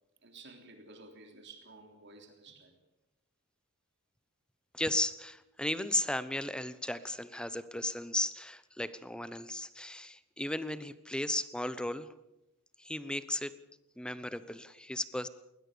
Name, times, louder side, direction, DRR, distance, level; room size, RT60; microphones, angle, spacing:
voice 1, 0.2-2.8 14.1-14.2, right 3 dB, 50° right, 5 dB, 3.4 m, -53 dB
voice 2, 4.7-12.1 12.8-13.5 14.0-15.3, left 1 dB, 5° left, 14 dB, 0.9 m, -35 dB
20.5 x 20.0 x 6.9 m, 0.89 s
head